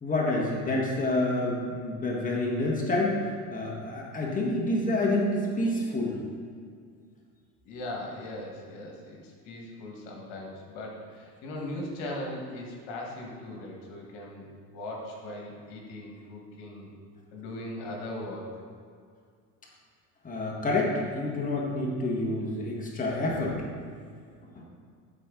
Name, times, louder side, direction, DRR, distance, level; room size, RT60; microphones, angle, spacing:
voice 1, 0.0-3.2 3.5-6.2 20.2-23.6 24.4-24.6, left 2 dB, 20° left, -3 dB, 1.5 m, -28 dB
voice 2, 7.6-16.9 17.3-18.6, left 1 dB, 70° left, -1 dB, 1.8 m, -39 dB
11.0 x 4.4 x 3.9 m, 2.2 s
supercardioid pair, 100°, 43 cm